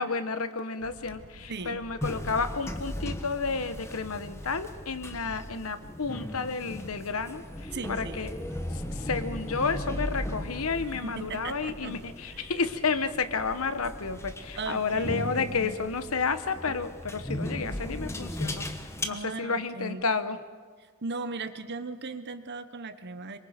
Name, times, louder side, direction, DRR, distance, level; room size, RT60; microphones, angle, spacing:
voice 1, 0.0-8.4 8.7-18.7 19.0-20.4, left 4 dB, 75° left, 11 dB, 1.2 m, -31 dB
sound 1, 0.8-19.2, right 2 dB, 80° right, 1.5 m, -55 dB
voice 2, 1.5-1.8 7.7-8.3 10.9-11.9 12.3-12.5 14.6-15.8 19.1-20.0 21.0-23.4, right 3 dB, 50° right, 11 dB, 1.1 m, -37 dB
sound 2, 2.0-19.0, left 1 dB, 15° left, 1.2 m, -37 dB
26.0 x 23.0 x 5.2 m, 1.5 s
head